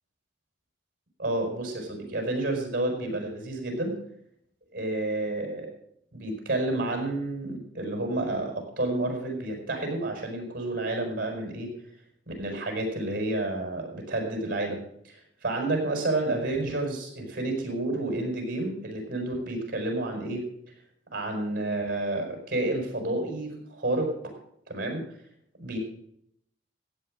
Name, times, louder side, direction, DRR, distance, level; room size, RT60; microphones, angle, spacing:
voice 1, 1.2-3.9 4.7-5.7 6.1-11.7 12.3-14.8 15.0-20.4 21.1-24.1 24.7-25.0 25.6-25.8, right 2 dB, 50° right, 2 dB, 5.8 m, -30 dB
15.0 x 8.7 x 6.4 m, 0.70 s
head